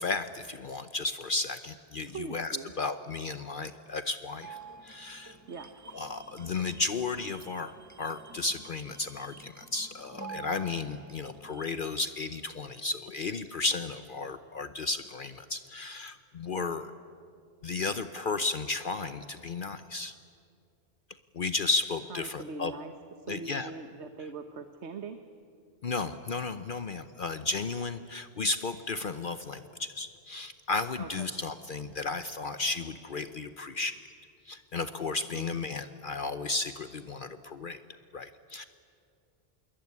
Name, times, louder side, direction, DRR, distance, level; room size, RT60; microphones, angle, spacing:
voice 1, 0.0-5.4 5.9-16.9 17.6-20.1 21.3-22.7 23.3-23.7 25.8-33.9 34.5-37.8 38.1-38.6, left 3 dB, 50° left, 11 dB, 0.9 m, -34 dB
voice 2, 2.1-2.7 5.5-5.7 16.6-16.9 22.1-22.9 23.2-25.2 31.0-31.3 35.3-35.7, right 4 dB, 80° right, 8 dB, 1.4 m, -42 dB
sound 1, 4.4-11.7, right 5 dB, 15° right, 1.0 m, -49 dB
26.5 x 21.5 x 9.6 m, 2.3 s
omnidirectional pair, 1.1 m